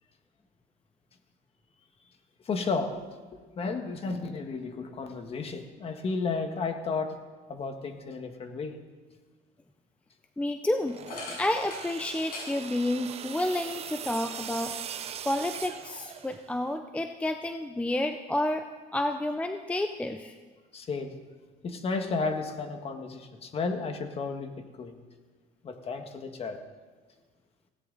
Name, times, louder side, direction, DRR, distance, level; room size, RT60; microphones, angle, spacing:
voice 1, 2.4-3.0 3.3-7.2 7.5-8.8 20.7-21.2 21.6-25.0 25.6-26.6, left 4 dB, 35° left, 6 dB, 1.6 m, -33 dB
voice 2, 10.4-11.0 11.4-14.8 15.2-18.6 18.9-20.3, left 1 dB, 5° left, 7 dB, 0.5 m, -30 dB
sound 1, 10.8-16.6, right 9 dB, 40° right, 0.7 m, -41 dB
sound 2, 11.0-15.0 15.4-16.6, left 3 dB, 60° left, 5.3 m, -45 dB
18.0 x 16.5 x 4.0 m, 1.4 s
cardioid pair, 135°, 17 cm